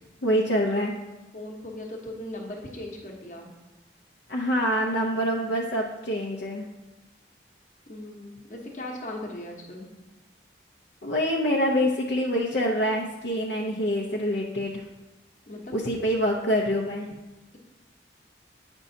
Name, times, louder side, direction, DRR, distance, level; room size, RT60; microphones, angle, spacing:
voice 1, 0.2-1.0 4.3-6.6 11.0-14.7 15.7-17.1, equal, 65° left, -2 dB, 0.6 m, -25 dB
voice 2, 1.3-3.5 7.9-9.9 15.5-15.7, left 1 dB, 45° left, 0 dB, 1.0 m, -38 dB
8.4 x 5.4 x 2.7 m, 1.1 s
head